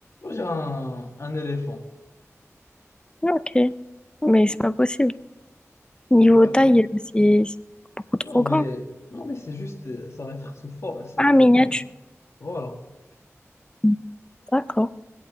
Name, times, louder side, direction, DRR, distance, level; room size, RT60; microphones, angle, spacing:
voice 1, 0.2-1.9 6.3-6.5 8.2-11.7 12.4-12.8, left 2 dB, 65° left, 2 dB, 1.8 m, -32 dB
voice 2, 3.2-3.7 4.2-5.1 6.1-7.5 8.3-8.6 11.2-11.8 13.8-14.0 14.5-14.9, left 1 dB, 15° left, 14 dB, 0.5 m, -18 dB
20.5 x 8.4 x 4.0 m, 1.0 s
wide cardioid pair, 45°, 5 cm